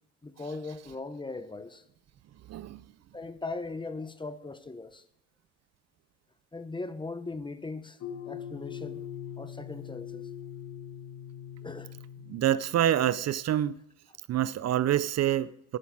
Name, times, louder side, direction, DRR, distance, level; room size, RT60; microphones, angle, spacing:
voice 1, 0.2-1.8 3.1-5.0 6.5-8.0 8.3-9.0 9.4-10.2 11.6-11.9 13.5-13.6, left 3 dB, 15° left, 0.9 m, -39 dB
voice 2, 2.5-2.8 12.3-13.7 14.3-15.8, right 11 dB, 60° right, 0.5 m, -26 dB
sound 1, 8.0-13.2, left 9 dB, 65° left, 1.0 m, -42 dB
12.0 x 10.5 x 4.8 m
cardioid pair, 90°, 30 cm